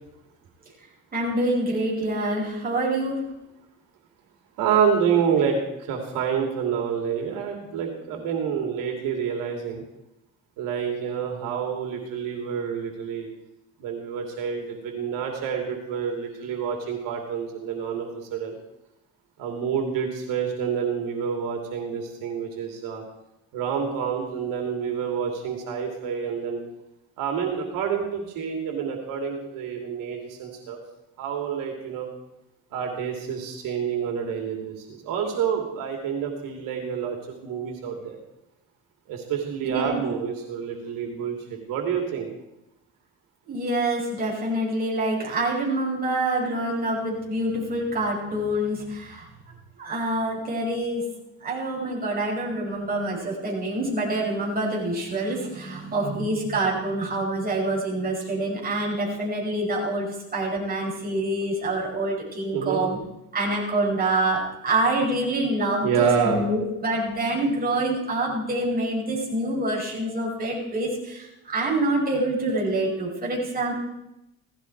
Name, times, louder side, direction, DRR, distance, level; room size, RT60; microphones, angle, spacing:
voice 1, 1.1-3.2 39.6-40.0 43.4-49.3 49.8-51.0 51.4-63.0 63.3-73.7, right 1 dB, 30° right, -3 dB, 6.5 m, -26 dB
voice 2, 4.6-9.8 10.6-13.3 13.8-18.6 19.4-23.0 23.5-26.6 27.2-30.8 31.2-32.1 32.7-38.2 39.1-42.3 62.5-62.8 65.8-66.4, right 7 dB, 90° right, 2 dB, 2.8 m, -28 dB
17.5 x 15.0 x 4.6 m, 0.89 s
cardioid pair, 125°, 32 cm